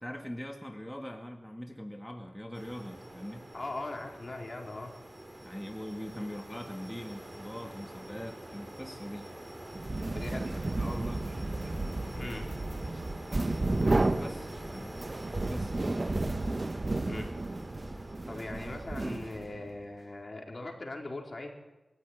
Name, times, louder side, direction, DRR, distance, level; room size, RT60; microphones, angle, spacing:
voice 1, 0.0-3.5 5.4-9.3 10.8-11.3 14.2-15.1 15.4-16.0, equal, 5° left, 3 dB, 2.0 m, -42 dB
ill wind, 2.5-19.0, right 1 dB, 20° right, 4.6 m, -46 dB
voice 2, 3.5-4.9 10.0-10.7 12.1-12.8 13.4-13.6 14.2-14.3 17.0-17.4 17.8-17.9 18.3-21.5, left 2 dB, 45° left, 1 dB, 4.7 m, -41 dB
sound 1, 9.7-19.7, right 2 dB, 40° right, 1.2 m, -32 dB
21.0 x 14.5 x 9.9 m, 1.1 s
cardioid pair, 55°, 0 cm